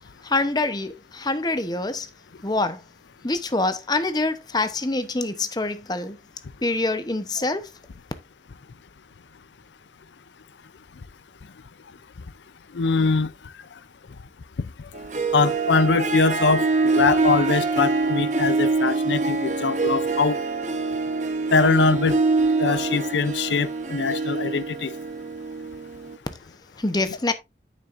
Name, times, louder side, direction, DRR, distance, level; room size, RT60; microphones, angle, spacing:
voice 1, 0.2-2.1 2.4-2.8 3.2-6.2 6.6-7.7 26.8-27.3, left 2 dB, 25° left, 0.8 m, -25 dB
voice 2, 12.7-13.3 15.3-20.4 21.5-22.2 22.6-24.9, left 4 dB, 85° left, 0.5 m, -22 dB
Harp, 14.9-26.2, right 3 dB, 45° right, 0.9 m, -25 dB
9.5 x 7.3 x 2.5 m
head